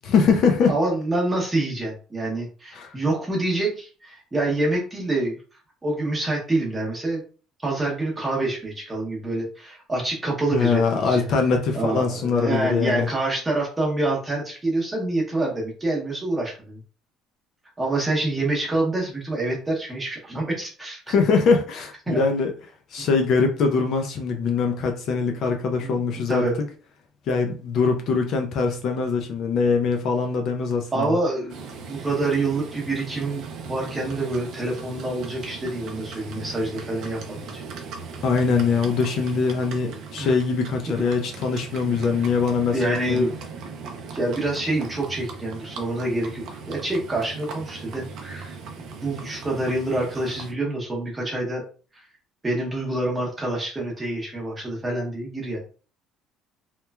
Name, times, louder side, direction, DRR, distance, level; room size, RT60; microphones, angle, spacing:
voice 1, 0.0-0.7 2.7-2.9 10.5-13.1 21.1-22.5 22.9-26.4 27.3-31.2 38.2-43.2, left 5 dB, 45° left, 0.4 m, -22 dB
voice 2, 0.7-5.4 5.8-7.2 7.6-11.3 11.7-16.8 17.8-21.1 22.1-22.2 25.8-26.0 26.3-26.6 30.9-37.6 40.2-40.3 40.9-41.1 42.7-43.3 44.1-48.6 49.0-51.6 52.4-55.6, right 2 dB, 10° right, 0.8 m, -26 dB
Livestock farm animals working animals, 31.5-50.5, right 5 dB, 50° right, 0.4 m, -38 dB
3.0 x 2.1 x 2.3 m
cardioid pair, 175°, 0 cm